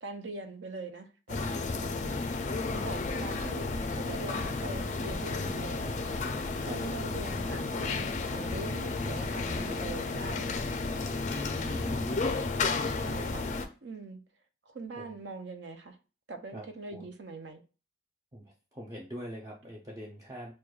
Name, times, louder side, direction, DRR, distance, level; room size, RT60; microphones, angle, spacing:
voice 1, 0.0-1.4 2.8-6.2 6.6-10.5 12.8-13.5 13.8-14.2 14.7-16.0 16.3-17.6, right 3 dB, 80° right, 0.5 m, -42 dB
sound 1, 1.3-13.7, left 3 dB, 40° left, 0.3 m, -32 dB
Guitar, 6.0-13.7, equal, 60° right, 1.9 m, -53 dB
voice 2, 11.3-12.3 15.0-15.1 16.5-16.7 16.9-17.1 18.3-20.5, equal, 20° right, 0.5 m, -42 dB
6.1 x 2.2 x 2.3 m
head